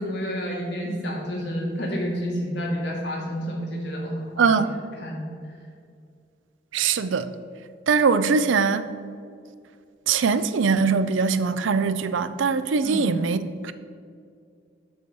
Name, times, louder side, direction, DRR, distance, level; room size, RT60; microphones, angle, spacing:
voice 1, 0.0-4.6 5.0-5.3 12.8-13.2, equal, 60° left, 2.0 m, -29 dB
voice 2, 4.4-4.8 6.7-7.3 7.9-8.9 10.1-13.4, right 5 dB, 85° right, 0.5 m, -22 dB
7.1 x 6.3 x 5.3 m
head